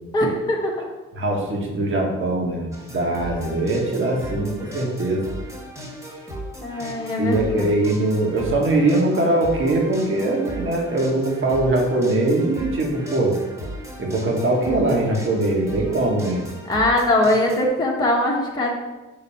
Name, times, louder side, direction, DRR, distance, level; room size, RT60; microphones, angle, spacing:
voice 1, 0.1-0.7 6.6-7.7 16.7-18.7, left 1 dB, 15° left, -4 dB, 1.4 m, -21 dB
voice 2, 1.2-5.2 7.2-13.4 14.0-16.4, right 2 dB, 40° right, -1 dB, 1.7 m, -21 dB
sound 1, 2.7-17.7, equal, 10° right, 1.8 m, -36 dB
5.4 x 3.9 x 5.6 m, 1.1 s
cardioid pair, 90°, 30 cm